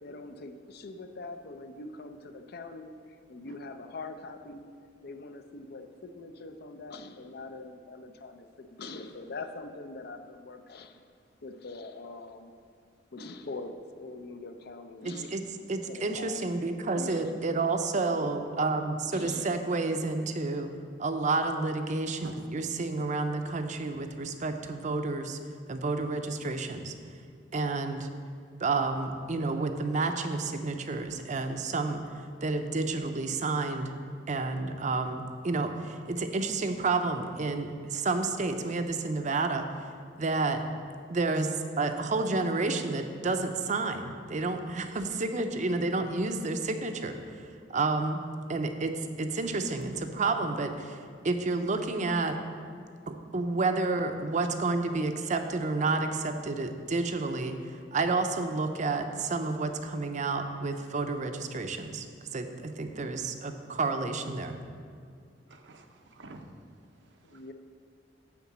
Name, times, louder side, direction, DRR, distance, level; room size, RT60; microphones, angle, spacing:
voice 1, 0.0-2.9 3.3-4.7 5.0-11.0 11.4-12.5 13.1-15.4 15.9-16.4 16.9-17.4 18.2-18.4 19.1-19.5 67.2-67.5, left 3 dB, 60° left, 8 dB, 0.6 m, -43 dB
voice 2, 15.0-15.4 15.7-20.7 21.0-25.4 25.7-26.9 27.5-28.1 28.6-32.0 32.4-33.9 34.3-39.7 40.2-40.6 41.1-41.5 41.8-47.4 47.7-48.2 48.5-51.0 51.2-52.4 53.1-62.1 62.3-64.6, right 3 dB, 40° right, 7 dB, 0.6 m, -30 dB
voice 3, 65.5-66.5 67.1-67.5, right 2 dB, 80° right, 4 dB, 0.8 m, -44 dB
9.6 x 3.9 x 7.2 m, 2.2 s
head